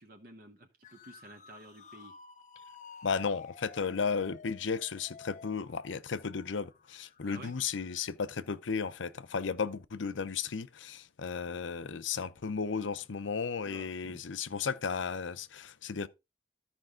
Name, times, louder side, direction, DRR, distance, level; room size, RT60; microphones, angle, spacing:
voice 1, 0.0-2.1 2.7-3.1 7.2-7.5 13.6-14.2, right 2 dB, 50° right, 1.0 m, -52 dB
sound 1, 0.8-8.1, left 5 dB, 40° left, 0.6 m, -53 dB
voice 2, 3.0-16.1, left 5 dB, 90° left, 0.6 m, -34 dB
13.5 x 5.3 x 3.7 m
head